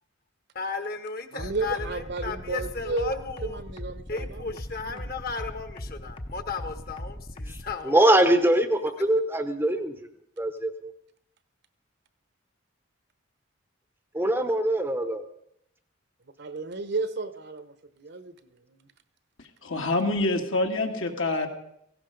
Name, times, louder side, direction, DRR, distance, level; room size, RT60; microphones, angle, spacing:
voice 1, 0.5-3.6 4.1-8.6, left 4 dB, 45° left, 8 dB, 1.4 m, -35 dB
voice 2, 1.3-3.1 3.4-4.6 4.8-5.1 16.4-18.9, right 3 dB, 55° right, 12 dB, 0.9 m, -33 dB
sound 1, 1.4-7.7, left 1 dB, 25° left, 0.7 m, -38 dB
voice 3, 7.8-10.1 10.4-10.9 14.1-15.2, right 1 dB, 10° right, 9 dB, 0.8 m, -23 dB
voice 4, 19.6-21.5, left 2 dB, 70° left, 3 dB, 2.1 m, -26 dB
17.5 x 16.0 x 5.2 m, 0.75 s
head